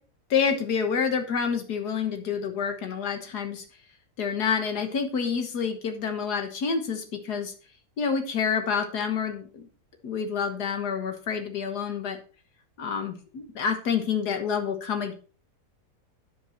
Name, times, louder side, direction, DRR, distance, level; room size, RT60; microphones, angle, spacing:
voice 1, 0.3-3.6 4.2-7.5 8.0-9.7 10.0-12.2 12.8-15.1, left 6 dB, 90° left, 6 dB, 1.9 m, -28 dB
9.0 x 7.8 x 4.3 m, 0.38 s
omnidirectional pair, 1.7 m